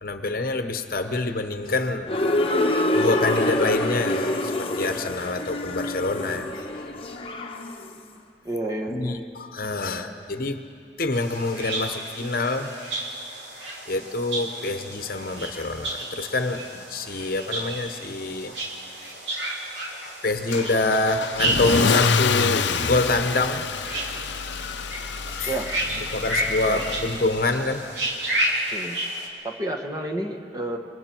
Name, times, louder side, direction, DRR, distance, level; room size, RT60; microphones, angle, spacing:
voice 1, 0.0-2.1 2.9-6.9 8.9-10.6 11.0-12.7 13.9-18.5 20.0-23.7 23.9-24.1 25.3-25.5 26.1-27.9, left 2 dB, 50° left, 7 dB, 1.0 m, -26 dB
sound 1, 2.1-8.0, left 1 dB, 30° left, 1.0 m, -26 dB
voice 2, 8.4-9.3 25.5-25.7 26.6-26.8 28.7-29.0 29.4-30.8, right 1 dB, 20° right, 1 dB, 1.2 m, -30 dB
sound 2, 11.1-29.3, right 1 dB, 75° right, 3.1 m, -32 dB
Car / Engine starting / Accelerating revving vroom, 20.5-27.6, left 5 dB, 75° left, 0.6 m, -27 dB
28.5 x 21.0 x 4.5 m, 2.7 s
head